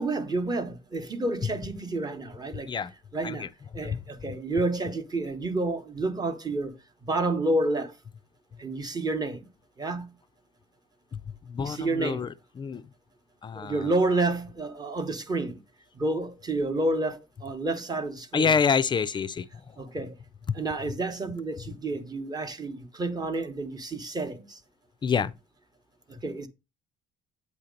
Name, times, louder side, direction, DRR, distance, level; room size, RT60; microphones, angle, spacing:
voice 1, 0.0-2.7 3.1-3.5 3.7-7.9 8.6-9.4 9.8-10.2 11.6-12.3 13.5-15.6 15.9-18.5 19.8-20.1 20.5-24.6 26.1-26.5, right 2 dB, 25° right, 0.8 m, -29 dB
voice 2, 11.1-12.9 13.4-13.9 18.3-19.8 20.5-20.6 25.0-25.3, left 6 dB, 30° left, 0.3 m, -28 dB
8.2 x 2.8 x 5.1 m
cardioid pair, 110°, 17 cm